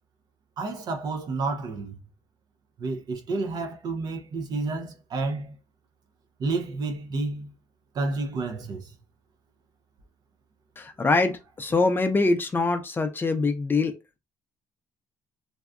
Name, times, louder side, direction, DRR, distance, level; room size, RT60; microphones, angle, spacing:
voice 1, 0.6-2.0 2.8-5.6 6.4-7.5 7.9-8.9, right 3 dB, 55° right, 0.6 m, -30 dB
voice 2, 10.8-13.9, left 3 dB, 25° left, 0.5 m, -24 dB
2.7 x 2.3 x 2.2 m
cardioid pair, 85°, 8 cm